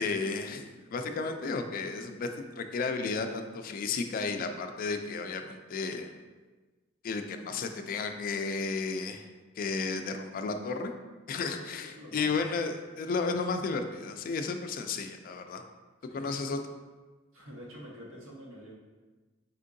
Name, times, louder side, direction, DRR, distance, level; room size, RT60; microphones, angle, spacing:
voice 1, 0.0-6.1 7.0-9.3 9.6-10.9 11.3-15.6 16.1-16.6, left 4 dB, 45° left, 7 dB, 0.3 m, -33 dB
voice 2, 11.4-12.3 13.0-13.5 16.1-16.4 17.3-18.7, equal, 85° right, -4 dB, 1.1 m, -47 dB
4.3 x 3.7 x 2.6 m, 1.3 s
head